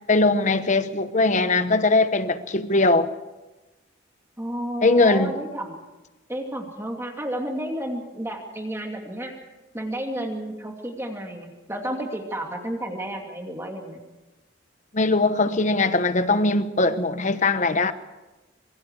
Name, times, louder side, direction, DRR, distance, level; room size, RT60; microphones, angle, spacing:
voice 1, 0.1-3.1 4.8-5.3 14.9-17.9, left 3 dB, 40° left, 1.1 m, -20 dB
voice 2, 4.4-5.8 6.3-9.3 9.7-14.0, right 1 dB, 15° right, 2.7 m, -31 dB
26.0 x 22.5 x 4.9 m
head